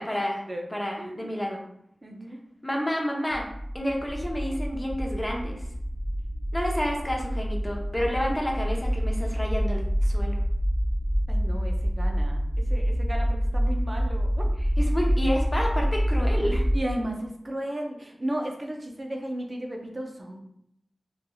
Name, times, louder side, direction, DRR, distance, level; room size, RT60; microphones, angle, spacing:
voice 1, 0.0-0.4 0.7-1.6 2.6-3.4 3.7-5.6 6.5-10.4 14.8-16.7, equal, 20° left, 0 dB, 0.7 m, -29 dB
voice 2, 1.0-1.3 2.0-2.4 11.3-14.5 16.7-20.4, right 1 dB, 40° right, 1 dB, 0.6 m, -34 dB
sound 1, 3.3-16.8, equal, 20° right, 1.0 m, -27 dB
3.2 x 2.7 x 2.2 m, 0.74 s
cardioid pair, 45°, 0 cm